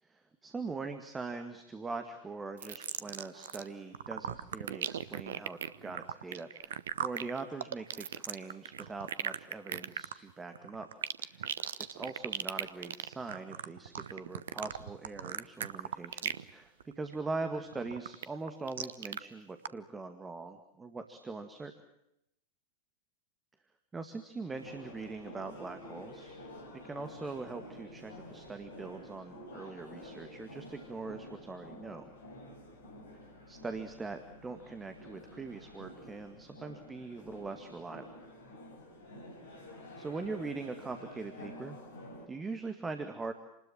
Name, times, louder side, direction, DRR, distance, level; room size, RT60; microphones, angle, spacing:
voice 1, 0.0-10.9 11.2-11.4 11.9-21.7 23.9-26.4 26.7-32.1 33.5-38.1 40.0-41.8 42.3-43.3, right 3 dB, 15° right, 7 dB, 2.0 m, -42 dB
sound 1, 2.6-3.7 3.9-16.5 16.8-17.1 17.5-19.2 19.6-19.7, right 9 dB, 65° right, 1.0 m, -38 dB
sound 2, 24.5-42.3, left 1 dB, 65° left, 5.9 m, -50 dB
29.0 x 20.5 x 7.5 m, 0.83 s
figure-of-eight pair, 90°, 0 cm